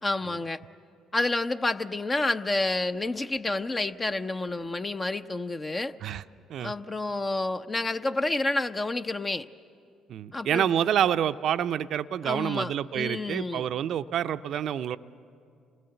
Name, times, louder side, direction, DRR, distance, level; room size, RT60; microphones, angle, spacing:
voice 1, 0.0-0.6 1.1-6.0 6.6-9.5 10.3-10.7 12.2-13.6, left 2 dB, 30° left, 9 dB, 0.6 m, -29 dB
voice 2, 10.1-15.0, right 9 dB, 65° right, 12 dB, 0.5 m, -28 dB
27.0 x 19.5 x 7.9 m, 2.4 s
hypercardioid pair, 55°, 0 cm